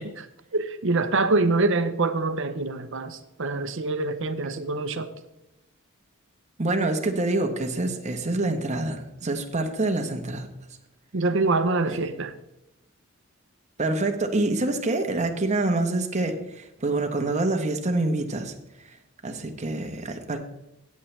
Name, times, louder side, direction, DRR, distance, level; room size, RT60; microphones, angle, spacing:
voice 1, 0.5-5.1 11.1-12.3, right 3 dB, 65° right, 11 dB, 0.8 m, -25 dB
voice 2, 6.6-10.5 11.9-12.0 13.8-18.5 19.2-20.4, right 2 dB, 35° right, 5 dB, 1.1 m, -26 dB
15.0 x 8.5 x 3.3 m, 0.90 s
head